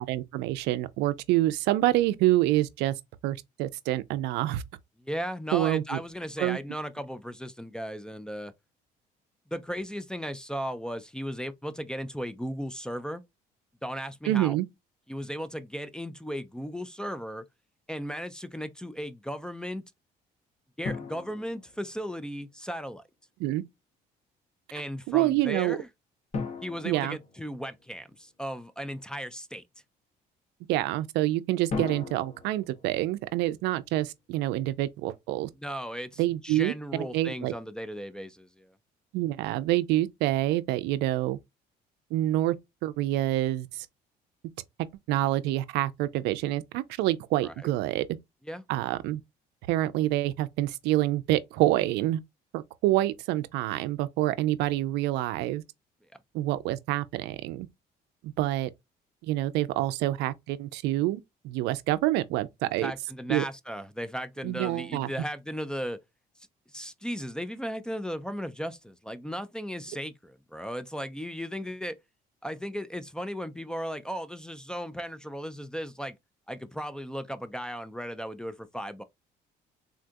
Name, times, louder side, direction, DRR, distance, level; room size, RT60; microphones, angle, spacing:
voice 1, 0.0-3.0 3.2-4.6 5.5-6.0 6.4-6.6 14.2-14.7 23.4-23.6 25.1-25.8 26.8-27.2 30.7-35.5 36.2-37.5 39.1-41.4 42.1-42.5 42.8-43.9 45.1-48.0 48.7-49.2 49.7-52.2 52.5-55.6 56.3-57.7 58.2-58.7 59.2-62.9 63.3-63.4 64.4-65.1, right 15 dB, 90° right, 0.4 m, -27 dB
voice 2, 5.0-8.5 9.5-13.2 13.8-14.6 15.1-17.5 17.9-19.8 20.8-23.0 24.7-25.9 26.6-29.6 35.6-38.7 47.4-47.5 48.5-48.6 62.8-66.0 66.7-72.0 72.4-76.2 76.5-79.0, equal, 5° left, 0.3 m, -36 dB
sound 1, 20.8-22.5 26.3-28.2 31.7-34.0, left 4 dB, 40° left, 1.0 m, -39 dB
3.7 x 2.3 x 2.5 m
cardioid pair, 110°, 17 cm